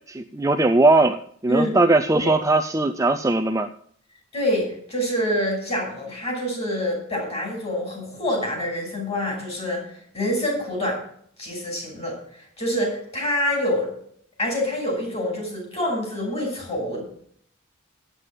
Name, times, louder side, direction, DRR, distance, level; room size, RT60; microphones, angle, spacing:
voice 1, 0.1-3.7, right 2 dB, 15° right, 7 dB, 0.4 m, -19 dB
voice 2, 4.3-11.0 11.4-13.9 14.4-17.1, left 1 dB, 30° left, 0 dB, 6.2 m, -26 dB
9.0 x 8.2 x 7.6 m, 0.63 s
head